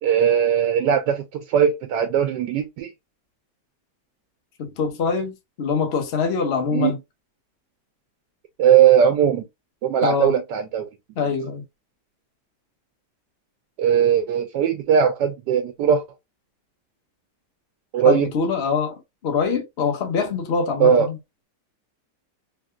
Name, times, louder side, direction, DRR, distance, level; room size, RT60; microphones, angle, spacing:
voice 1, 0.0-2.9 6.7-7.0 8.6-9.4 9.8-10.9 13.8-16.0 17.9-18.3 20.8-21.1, right 8 dB, 85° right, 1.2 m, -19 dB
voice 2, 4.6-7.0 10.0-10.3 11.2-11.6 18.0-21.2, left 5 dB, 55° left, 0.7 m, -24 dB
3.4 x 2.6 x 2.3 m
omnidirectional pair, 1.8 m